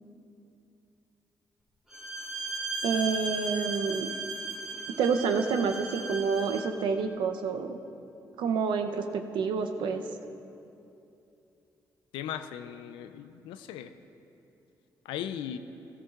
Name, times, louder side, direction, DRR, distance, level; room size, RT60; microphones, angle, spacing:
Bowed string instrument, 1.9-6.7, right 3 dB, 5° right, 2.2 m, -36 dB
voice 1, 2.8-4.1 5.0-7.8 8.4-10.0, right 5 dB, 75° right, 6 dB, 0.7 m, -28 dB
voice 2, 12.1-13.9 15.0-15.6, left 10 dB, 90° left, 10 dB, 0.4 m, -37 dB
14.0 x 13.5 x 2.4 m, 2.8 s
supercardioid pair, 55°, 8 cm